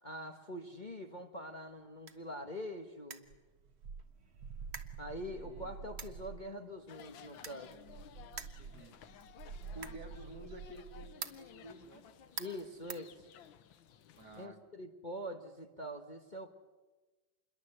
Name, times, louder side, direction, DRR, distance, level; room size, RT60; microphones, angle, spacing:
voice 1, 0.0-3.3 5.0-7.8 12.4-13.2 14.3-16.5, equal, 25° left, 4 dB, 1.4 m, -44 dB
sound 1, 1.5-13.8, right 5 dB, 35° right, 1.4 m, -52 dB
sound 2, 3.3-6.5 7.7-11.2, right 6 dB, 85° right, 2.0 m, -48 dB
voice 2, 5.3-5.7 8.6-9.0 9.7-12.1 14.2-14.6, right 1 dB, 55° right, 6 dB, 2.4 m, -51 dB
sound 3, 6.9-14.5, left 9 dB, 75° left, 1.8 m, -56 dB
27.5 x 22.0 x 8.0 m, 1.2 s
omnidirectional pair, 2.2 m